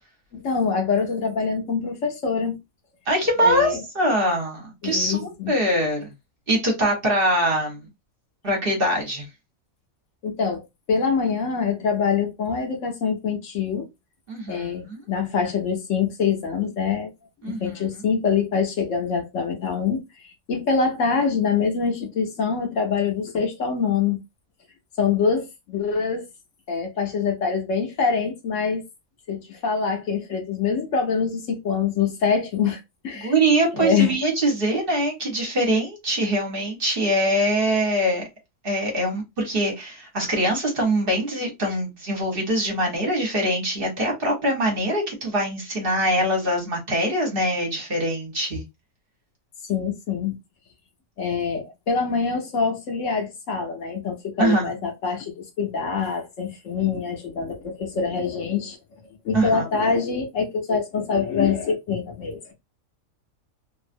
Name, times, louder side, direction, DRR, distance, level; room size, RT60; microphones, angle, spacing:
voice 1, 0.3-2.6 3.4-3.8 4.8-5.6 10.2-13.9 14.5-17.1 17.4-24.2 25.0-26.3 26.7-28.8 29.3-33.3 33.8-34.2 49.6-50.3 51.2-58.8 59.2-62.5, left 5 dB, 65° left, 1.0 m, -25 dB
voice 2, 3.1-6.1 6.5-7.9 8.4-9.3 14.3-15.0 17.4-17.7 33.2-38.2 38.6-48.6 54.4-54.7 59.3-59.6, right 1 dB, 45° right, 1.1 m, -23 dB
2.7 x 2.4 x 2.5 m
omnidirectional pair, 1.5 m